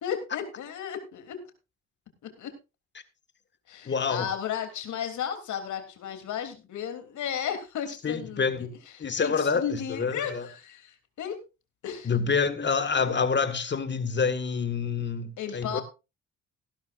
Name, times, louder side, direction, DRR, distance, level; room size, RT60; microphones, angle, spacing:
voice 1, 0.0-1.4 2.2-2.5 3.7-8.7 8.9-11.4 11.8-12.1 15.4-15.8, left 8 dB, 75° left, 3.2 m, -34 dB
voice 2, 3.9-4.3 8.0-8.7 9.0-10.5 12.1-15.8, left 5 dB, 35° left, 1.7 m, -27 dB
16.5 x 12.5 x 2.5 m
cardioid pair, 90°, 30 cm